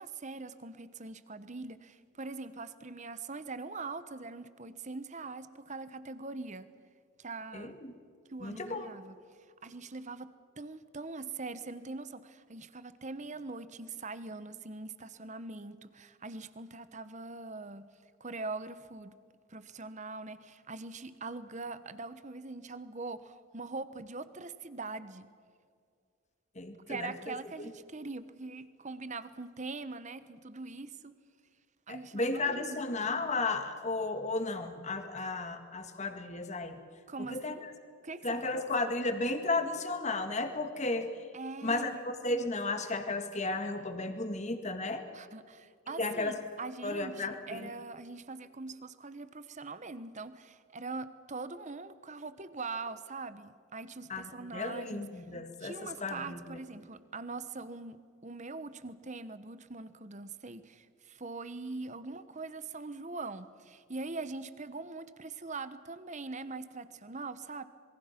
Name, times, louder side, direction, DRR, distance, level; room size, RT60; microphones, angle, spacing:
voice 1, 0.0-6.7 7.2-7.8 8.3-9.2 9.6-17.9 18.2-19.2 19.5-25.3 26.9-31.1 31.9-32.8 37.1-37.7 38.0-38.6 41.3-42.0 45.1-55.1 55.6-67.6, right 3 dB, 35° right, 13 dB, 1.1 m, -42 dB
voice 2, 7.5-8.0 8.4-8.9 26.6-27.7 31.9-36.8 37.3-37.7 38.2-41.1 41.6-45.0 46.0-46.4 46.8-47.7 54.1-56.6, left 2 dB, 35° left, 7 dB, 1.9 m, -34 dB
27.0 x 22.5 x 6.0 m, 2.2 s
head